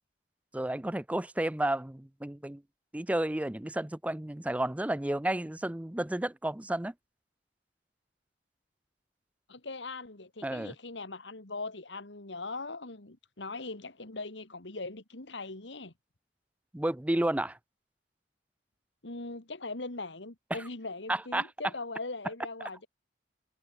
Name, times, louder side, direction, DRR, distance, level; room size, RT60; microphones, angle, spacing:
voice 1, 0.5-2.6 2.9-6.9 10.4-10.7 16.7-17.6 20.5-20.6 21.1-21.5, right 1 dB, 10° right, 0.4 m, -31 dB
voice 2, 9.5-15.9 19.0-22.9, left 3 dB, 80° left, 2.3 m, -40 dB
head